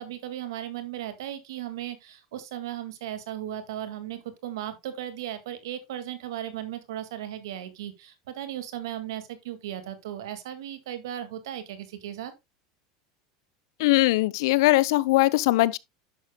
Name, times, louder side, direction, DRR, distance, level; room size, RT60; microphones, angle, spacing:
voice 1, 0.0-12.3, right 11 dB, 80° right, 1.9 m, -36 dB
voice 2, 13.8-15.8, left 19 dB, 75° left, 0.5 m, -21 dB
10.5 x 6.8 x 2.2 m
supercardioid pair, 110°, 2 cm